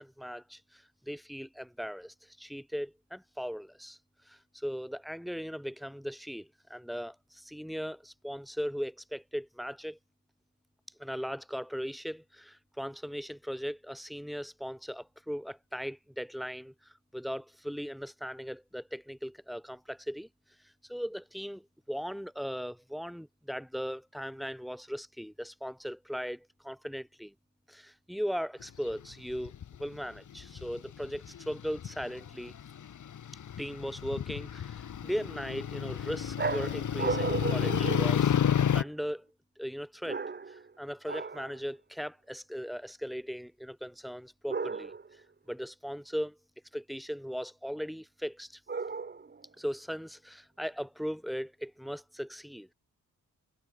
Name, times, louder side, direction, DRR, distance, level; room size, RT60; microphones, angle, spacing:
voice 1, 0.0-4.0 4.3-10.0 11.0-20.3 20.8-27.3 27.7-29.5 29.8-32.6 33.6-38.4 38.7-39.3 39.6-40.2 40.5-45.2 45.5-46.4 46.7-48.6 49.6-52.7, equal, ahead, 6.0 m, -38 dB
sound 1, 28.6-29.8 30.4-38.8, left 9 dB, 60° left, 1.9 m, -31 dB
sound 2, 36.4-38.9 40.0-40.7 41.1-41.5 44.5-45.2 48.7-49.4, right 4 dB, 30° right, 5.5 m, -35 dB
wide cardioid pair, 180°, 35 cm